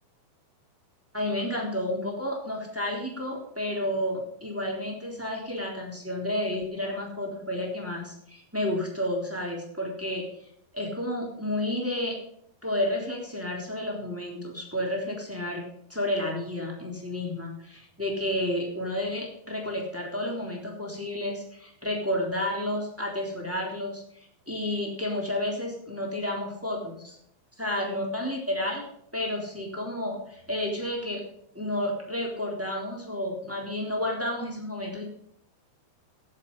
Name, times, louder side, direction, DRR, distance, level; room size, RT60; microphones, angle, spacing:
voice 1, 1.1-10.2 10.7-12.2 12.6-15.6 15.9-27.2 27.6-28.8 29.1-31.2 31.5-35.0, left 1 dB, 5° right, -2 dB, 3.3 m, -31 dB
16.5 x 7.6 x 5.5 m, 0.71 s
omnidirectional pair, 4.4 m